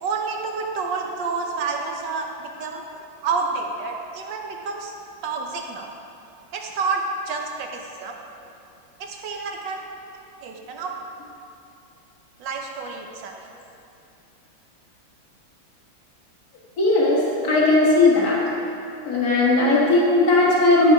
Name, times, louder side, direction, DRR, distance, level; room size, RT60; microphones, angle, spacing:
voice 1, 0.0-2.8 3.2-4.9 5.2-5.9 6.5-8.1 9.0-9.8 10.4-11.0 12.4-13.5, right 4 dB, 70° right, 2 dB, 1.4 m, -29 dB
voice 2, 16.8-17.2 17.5-18.4 19.1-20.9, left 2 dB, 50° left, -5 dB, 2.1 m, -17 dB
11.5 x 5.5 x 4.7 m, 2.7 s
omnidirectional pair, 2.1 m